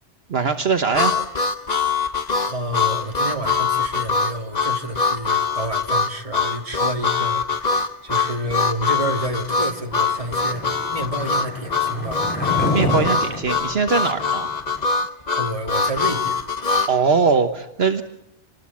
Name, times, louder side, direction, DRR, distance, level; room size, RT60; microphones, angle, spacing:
voice 1, 0.3-1.1 12.7-14.5 16.9-18.0, right 5 dB, 65° right, 7 dB, 1.4 m, -21 dB
Harmonica, 0.9-16.9, left 4 dB, 40° left, 1.1 m, -23 dB
voice 2, 2.4-7.7 8.0-12.2 15.3-16.5, right 1 dB, 30° right, 3 dB, 2.6 m, -29 dB
Skateboard, 9.4-14.8, left 1 dB, 10° left, 7.2 m, -29 dB
27.5 x 20.5 x 8.6 m, 0.89 s
omnidirectional pair, 1.2 m